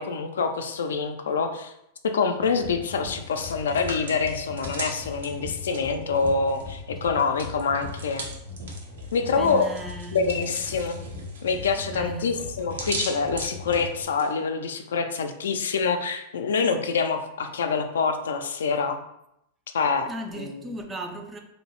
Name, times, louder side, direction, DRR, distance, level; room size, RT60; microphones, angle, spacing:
voice 1, 0.0-1.7 2.0-8.3 9.1-9.7 10.1-11.0 11.4-19.0 19.7-20.1 20.4-20.6, left 5 dB, 90° left, 0.3 m, -26 dB
sound 1, 2.4-14.0, left 3 dB, 75° right, 1.0 m, -39 dB
Hands, 3.1-6.8 7.0-14.3, right 3 dB, 90° right, 0.6 m, -39 dB
voice 2, 9.2-10.8 11.8-12.4 20.1-21.4, right 1 dB, 15° right, 0.3 m, -37 dB
2.6 x 2.0 x 2.9 m
hypercardioid pair, 125°, 0 cm